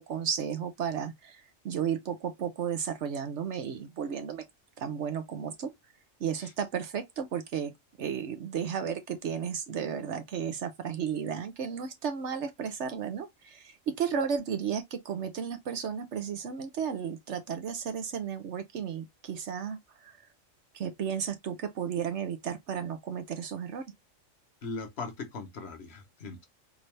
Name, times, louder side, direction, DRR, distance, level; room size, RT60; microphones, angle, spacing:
voice 1, 0.0-4.4 4.8-5.7 6.2-7.7 8.0-20.2 20.7-23.8, right 7 dB, 65° right, 1.0 m, -33 dB
voice 2, 24.6-26.5, left 4 dB, 55° left, 1.1 m, -39 dB
3.8 x 2.7 x 3.1 m
omnidirectional pair, 1.4 m